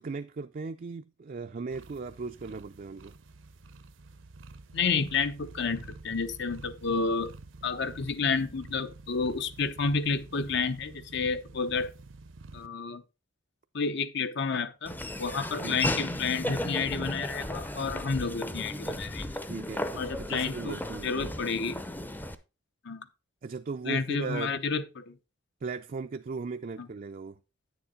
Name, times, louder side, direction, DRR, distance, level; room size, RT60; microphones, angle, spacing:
voice 1, 0.0-3.2 15.6-15.8 19.5-21.2 23.4-24.6 25.6-27.4, right 4 dB, 45° right, 0.4 m, -37 dB
sound 1, 1.7-12.7, right 3 dB, 75° right, 0.8 m, -49 dB
voice 2, 4.7-7.3 7.6-11.9 12.5-13.0 13.7-14.9 15.2-19.4 20.0-20.8 21.0-21.8 22.8-23.0 23.9-25.1, left 5 dB, 60° left, 0.8 m, -30 dB
Laughter / Walk footsteps, 14.9-22.4, left 1 dB, 10° left, 0.6 m, -35 dB
9.6 x 7.0 x 3.7 m
head